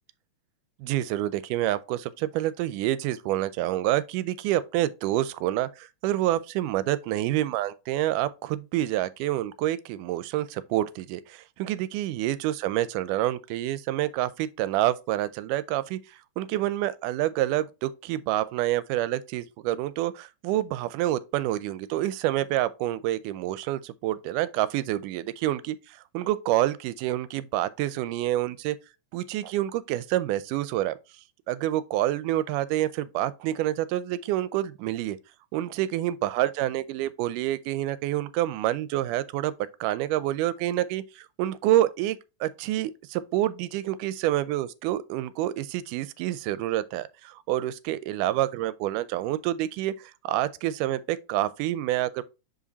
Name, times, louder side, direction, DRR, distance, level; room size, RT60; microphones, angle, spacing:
voice 1, 0.8-16.0 16.4-28.8 29.1-30.9 31.5-35.2 35.5-39.5 39.8-52.2, right 14 dB, 85° right, 2.1 m, -28 dB
5.3 x 5.1 x 4.0 m
omnidirectional pair, 3.6 m